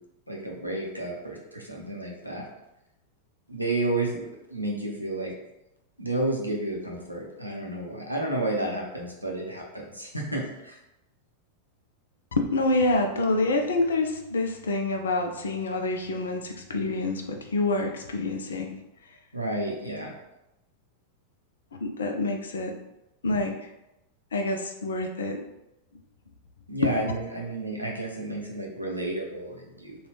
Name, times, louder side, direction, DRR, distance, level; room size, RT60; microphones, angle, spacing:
voice 1, 0.3-2.4 3.5-4.2 4.5-5.3 6.0-10.7 19.3-20.1 26.7-29.9, right 2 dB, 90° right, -1 dB, 0.7 m, -31 dB
voice 2, 12.4-18.8 21.7-22.8 23.2-23.6 24.3-25.4 26.8-26.9, left 2 dB, 65° left, 4 dB, 0.5 m, -27 dB
3.9 x 2.3 x 3.3 m, 0.91 s
figure-of-eight pair, 90°, 0 cm